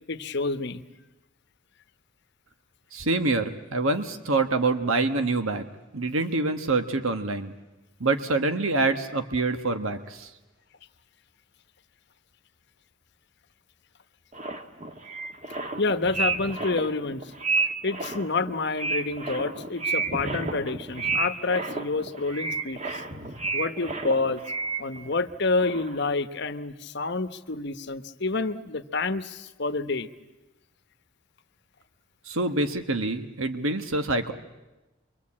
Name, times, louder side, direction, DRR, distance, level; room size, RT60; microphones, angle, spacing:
voice 1, 0.1-0.8 15.8-17.3 17.8-23.0 23.5-24.4 24.8-30.1, left 3 dB, 55° left, 11 dB, 1.1 m, -28 dB
voice 2, 2.9-5.7 5.9-7.5 8.0-10.3 32.3-34.3, right 3 dB, 75° right, 8 dB, 1.4 m, -26 dB
sound 1, 14.3-25.3 25.6-26.1, right 3 dB, 35° right, 1.5 m, -31 dB
27.5 x 23.5 x 8.7 m, 1.1 s
head